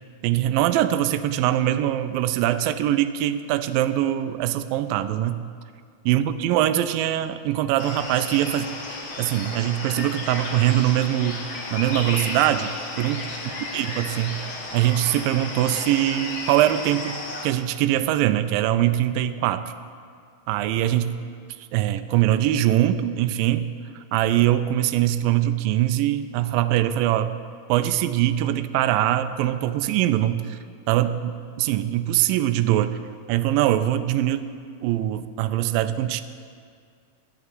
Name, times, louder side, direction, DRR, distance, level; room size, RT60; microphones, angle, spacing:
voice 1, 0.2-5.4 6.1-8.7 9.2-11.4 11.7-13.3 13.7-14.5 14.7-19.7 20.5-21.2 21.7-23.7 24.1-27.3 27.7-30.6 30.9-33.0 33.3-34.5 34.8-36.2, right 13 dB, 85° right, 10 dB, 2.0 m, -22 dB
sound 1, 7.8-17.5, left 2 dB, 60° left, 1.4 m, -33 dB
11.0 x 7.9 x 9.4 m, 2.2 s
omnidirectional pair, 4.5 m